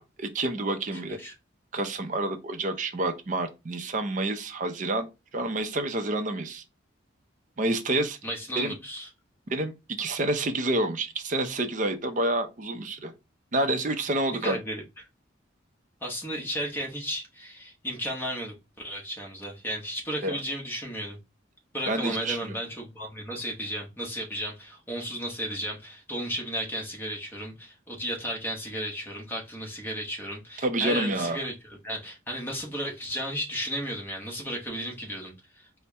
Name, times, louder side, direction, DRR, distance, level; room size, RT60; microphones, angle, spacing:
voice 1, 0.0-1.2 1.7-5.1 5.3-6.6 7.6-8.2 8.5-8.7 9.5-9.7 10.0-13.1 13.5-14.6 20.2-20.4 21.9-22.6 30.6-31.4, right 2 dB, 40° right, 0.5 m, -28 dB
voice 2, 0.9-1.4 8.2-9.1 14.4-14.8 16.0-18.5 18.8-21.2 21.7-35.7, equal, 10° left, 0.9 m, -34 dB
4.2 x 2.1 x 3.3 m
head